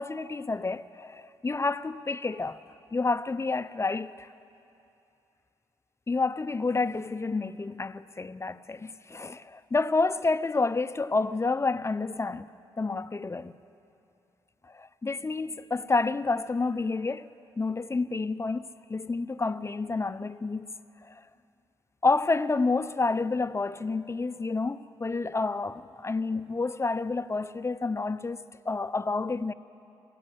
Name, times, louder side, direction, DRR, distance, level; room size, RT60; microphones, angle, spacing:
voice 1, 0.0-2.6 2.9-4.3 6.1-12.5 12.8-13.6 14.7-17.3 17.6-20.7 21.0-21.2 22.0-28.4 28.6-29.5, left 3 dB, 25° left, 0.8 m, -29 dB
25.0 x 16.0 x 8.1 m
hypercardioid pair, 45°, 11 cm